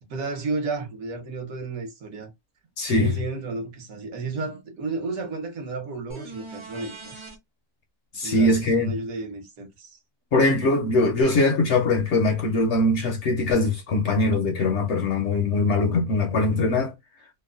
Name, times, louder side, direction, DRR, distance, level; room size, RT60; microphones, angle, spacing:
voice 1, 0.0-2.3 2.8-7.1 8.2-10.0, right 3 dB, 70° right, 1.3 m, -32 dB
voice 2, 2.8-3.1 8.1-8.9 10.3-16.9, left 2 dB, 65° left, 0.8 m, -22 dB
sound 1, 6.1-7.4 11.2-11.3, right 3 dB, 30° right, 0.6 m, -41 dB
3.0 x 2.1 x 2.3 m
omnidirectional pair, 1.6 m